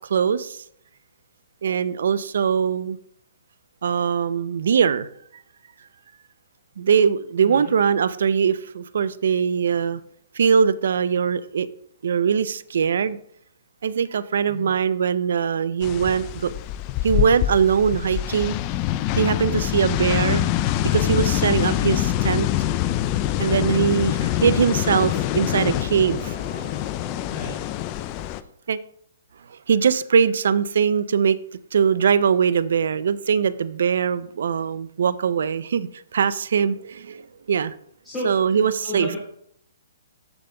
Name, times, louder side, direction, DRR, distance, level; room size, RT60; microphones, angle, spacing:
voice 1, 0.1-0.6 1.6-3.0 3.8-5.1 6.8-10.0 10.3-11.7 12.0-13.2 13.8-16.5 17.0-18.6 19.2-20.5 20.9-22.5 23.4-27.2 28.7-28.8 29.5-31.4 31.7-37.7 38.2-39.1, right 7 dB, 70° right, 16 dB, 0.4 m, -21 dB
voice 2, 7.4-7.7 14.5-14.7 27.3-27.6 38.0-39.2, left 2 dB, 15° left, -8 dB, 3.2 m, -34 dB
sound 1, 15.8-28.4, left 13 dB, 35° left, 0.4 m, -25 dB
13.0 x 5.0 x 2.2 m, 0.67 s
hypercardioid pair, 140°, 0 cm